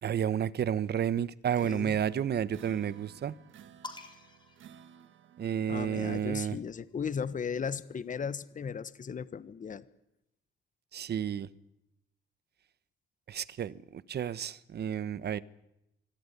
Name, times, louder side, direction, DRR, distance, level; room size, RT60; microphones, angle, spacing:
voice 1, 0.0-3.3 5.4-6.6 10.9-11.5 13.3-15.4, right 9 dB, 55° right, 17 dB, 1.1 m, -31 dB
sound 1, 1.5-5.8, right 8 dB, 75° right, 1.8 m, -55 dB
voice 2, 1.6-2.0 5.7-9.8, left 6 dB, 40° left, 15 dB, 1.3 m, -36 dB
sound 2, 3.8-5.6 6.8-8.4, left 3 dB, 25° left, 4.4 m, -51 dB
25.0 x 17.0 x 9.9 m, 0.86 s
cardioid pair, 90°, 20 cm